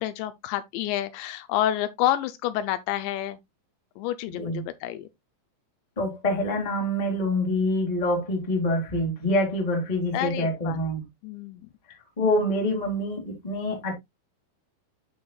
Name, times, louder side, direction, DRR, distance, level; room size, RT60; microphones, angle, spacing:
voice 1, 0.0-3.4 4.0-5.1 10.1-10.8 11.2-11.7, left 12 dB, 80° left, 2.7 m, -29 dB
voice 2, 6.0-11.0 12.2-13.9, left 1 dB, 20° left, 1.0 m, -26 dB
12.0 x 4.4 x 2.3 m
omnidirectional pair, 5.3 m